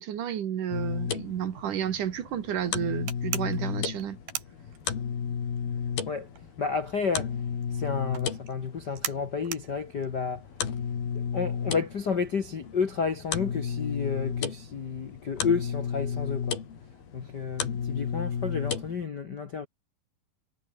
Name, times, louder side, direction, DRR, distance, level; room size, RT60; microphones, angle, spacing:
voice 1, 0.0-4.2, right 9 dB, 65° right, 3.1 m, -31 dB
sound 1, 0.7-19.0, left 7 dB, 85° left, 5.6 m, -33 dB
sound 2, 3.1-5.3 5.6-11.4, right 10 dB, 85° right, 4.1 m, -39 dB
voice 2, 6.6-7.4 7.7-10.5 11.1-16.6 17.1-19.7, left 5 dB, 50° left, 1.3 m, -31 dB
omnidirectional pair, 4.2 m